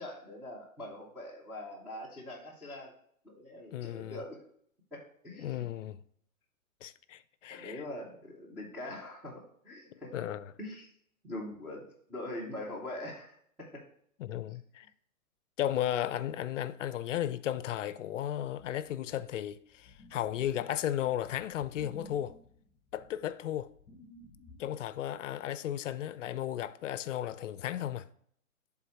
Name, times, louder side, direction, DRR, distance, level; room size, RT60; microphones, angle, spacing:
voice 1, 0.0-2.9 3.2-4.4 4.9-5.7 7.5-10.1 10.6-10.9 11.2-13.8, left 1 dB, 5° right, 0.6 m, -43 dB
voice 2, 3.7-4.2 5.4-6.0 6.8-7.8 9.9-10.5 14.2-14.9 15.6-22.3 22.9-23.7 24.6-28.1, left 11 dB, 60° left, 0.5 m, -35 dB
sound 1, 18.6-24.8, left 1 dB, 20° left, 1.1 m, -55 dB
8.2 x 3.8 x 4.4 m
hypercardioid pair, 150°, 42 cm